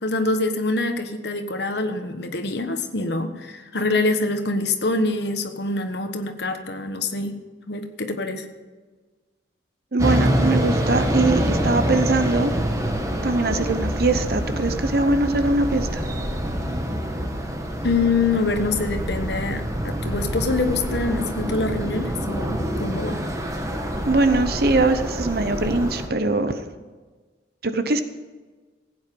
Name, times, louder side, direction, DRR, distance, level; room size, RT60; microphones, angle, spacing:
voice 1, 0.0-8.5 17.8-23.2, left 3 dB, 60° left, 6 dB, 1.3 m, -25 dB
voice 2, 9.9-12.6 13.2-16.0 24.1-26.6 27.6-28.0, right 2 dB, 55° right, 10 dB, 0.8 m, -22 dB
sound 1, 10.0-26.1, equal, 15° right, 1.2 m, -26 dB
15.5 x 9.0 x 5.3 m, 1.3 s
head